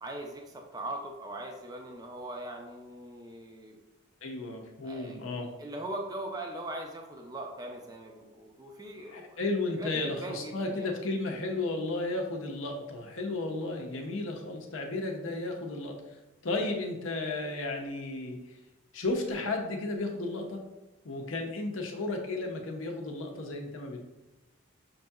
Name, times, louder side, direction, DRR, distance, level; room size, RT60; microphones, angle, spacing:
voice 1, 0.0-3.8 4.8-5.2 5.6-9.4 9.8-10.9, right 1 dB, 20° right, 2 dB, 0.4 m, -40 dB
voice 2, 4.2-5.5 9.1-16.0 16.4-18.5 18.9-20.6 21.0-24.0, left 2 dB, 75° left, 2 dB, 0.6 m, -33 dB
6.0 x 2.7 x 2.3 m, 1.1 s
head